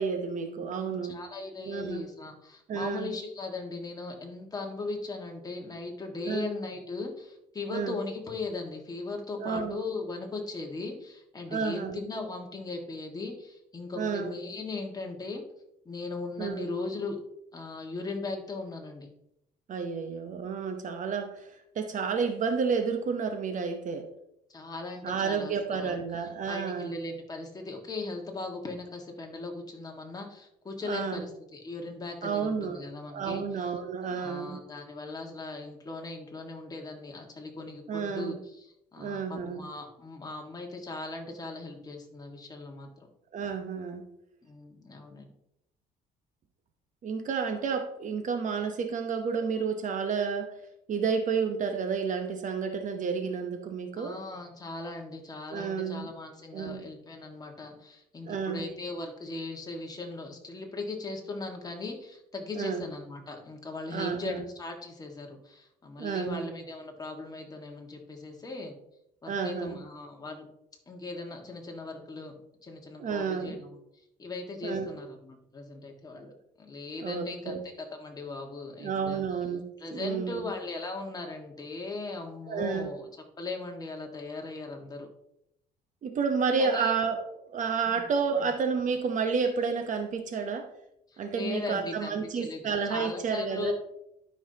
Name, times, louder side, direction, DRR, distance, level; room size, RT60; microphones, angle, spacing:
voice 1, 0.0-1.2 1.7-2.0 2.7-3.1 6.3-6.5 7.7-8.0 9.4-9.8 11.5-12.0 13.9-14.4 16.4-16.7 19.7-24.1 25.0-26.9 30.8-31.2 32.2-32.8 33.1-34.6 37.9-38.4 39.0-39.6 43.3-44.0 47.0-50.6 50.9-54.2 55.5-56.1 56.5-56.8 58.2-58.6 62.5-62.8 63.9-64.4 66.0-66.5 69.3-69.8 73.0-73.6 74.6-74.9 76.2-76.3 77.0-77.6 78.8-79.6 79.9-80.5 82.5-82.9 86.0-87.2 87.5-90.7 91.2-93.7, right 5 dB, 50° right, 6 dB, 0.9 m, -31 dB
voice 2, 0.8-15.4 15.9-17.2 17.5-19.1 24.5-26.0 26.5-33.7 34.1-38.7 38.9-42.9 44.4-45.3 54.0-68.7 69.2-70.5 70.9-73.8 74.2-77.6 77.9-79.2 79.8-83.1 83.4-85.1 86.6-86.9 87.9-88.0 88.3-88.4 91.1-93.7, left 3 dB, 20° left, 2 dB, 1.7 m, -38 dB
12.0 x 5.6 x 2.8 m, 0.79 s
cardioid pair, 110°, 17 cm